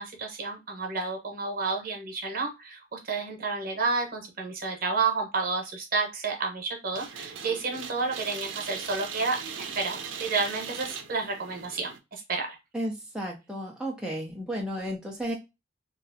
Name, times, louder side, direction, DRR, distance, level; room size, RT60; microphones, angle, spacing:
voice 1, 0.0-12.6, right 4 dB, 50° right, 2 dB, 0.9 m, -30 dB
sound 1, 6.9-12.0, right 6 dB, 90° right, 0.5 m, -39 dB
voice 2, 12.7-15.3, equal, 5° right, -2 dB, 0.5 m, -33 dB
3.0 x 2.5 x 2.6 m, 0.24 s
head